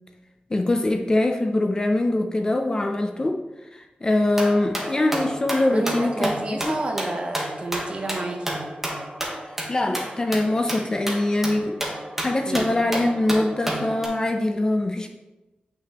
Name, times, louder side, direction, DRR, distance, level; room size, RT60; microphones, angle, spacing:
voice 1, 0.5-3.4 3.7-6.7 9.7-11.8 12.2-15.1, left 1 dB, 25° left, 4 dB, 0.5 m, -23 dB
sound 1, 4.3-14.1, right 1 dB, 10° right, 1.1 m, -31 dB
voice 2, 5.7-8.6 12.5-12.7, right 2 dB, 35° right, 2 dB, 0.9 m, -30 dB
8.6 x 5.7 x 3.0 m, 1.1 s
wide cardioid pair, 175°, 3 cm